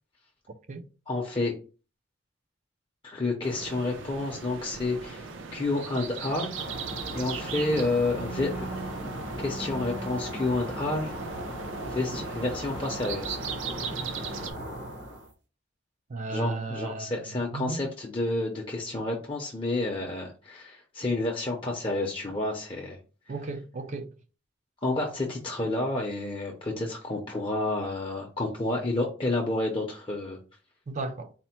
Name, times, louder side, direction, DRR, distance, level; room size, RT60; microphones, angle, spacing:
voice 1, 1.1-1.6 3.0-6.5 7.1-8.7 9.4-11.1 11.9-14.4 16.3-23.0 23.3-23.4 24.8-30.4, left 2 dB, 25° left, 0.6 m, -30 dB
sound 1, 3.4-14.5, right 6 dB, 80° right, 0.6 m, -39 dB
sound 2, 6.5-15.3, right 1 dB, 65° right, 1.0 m, -37 dB
voice 2, 16.1-17.1 17.5-17.8 23.3-24.1 30.9-31.3, right 3 dB, 40° right, 0.4 m, -34 dB
4.2 x 2.1 x 4.3 m
head